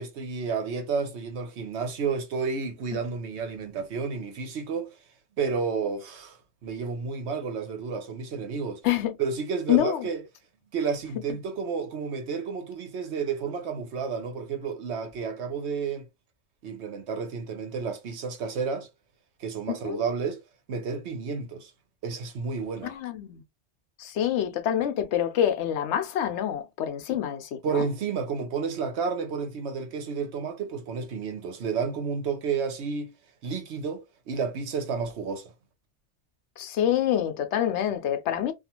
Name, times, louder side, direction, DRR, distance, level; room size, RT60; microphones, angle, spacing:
voice 1, 0.0-4.9 5.4-6.4 6.6-8.8 9.2-10.2 10.7-16.1 16.6-18.9 19.4-20.4 20.7-21.7 22.0-22.9 27.6-33.1 33.4-35.5, right 5 dB, 70° right, 1.0 m, -31 dB
voice 2, 8.8-9.2 9.7-10.1 19.7-20.0 22.8-23.4 24.0-27.9 36.6-38.5, left 11 dB, 75° left, 0.8 m, -26 dB
2.4 x 2.3 x 2.8 m
omnidirectional pair, 1.2 m